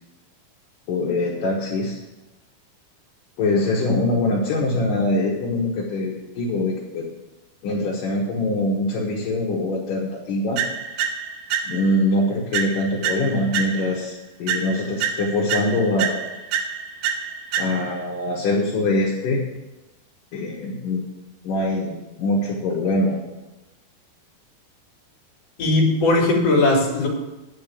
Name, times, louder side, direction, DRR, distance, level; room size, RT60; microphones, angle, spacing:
voice 1, 0.9-2.0 3.4-7.1 7.6-10.6 11.6-14.1 14.4-16.2 17.6-19.4 20.3-21.0 21.4-23.2, left 2 dB, 65° left, -3 dB, 2.7 m, -23 dB
sound 1, 10.6-12.0 12.5-14.1 14.5-18.1, right 7 dB, 75° right, 2.6 m, -28 dB
voice 2, 25.6-27.1, left 2 dB, 45° left, -2 dB, 3.1 m, -18 dB
10.0 x 5.6 x 8.3 m, 1.0 s
omnidirectional pair, 4.7 m